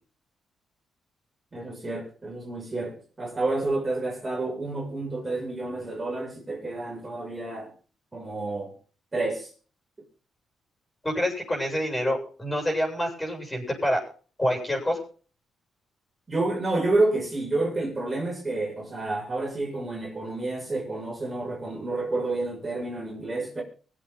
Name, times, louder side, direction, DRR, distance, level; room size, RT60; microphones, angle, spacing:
voice 1, 1.5-7.7 8.1-8.8 9.1-9.5 16.3-23.6, right 2 dB, 25° right, 6.5 m, -29 dB
voice 2, 11.0-14.0 14.4-15.0, equal, 15° left, 7.9 m, -27 dB
24.0 x 8.4 x 4.0 m
cardioid pair, 100°, 0 cm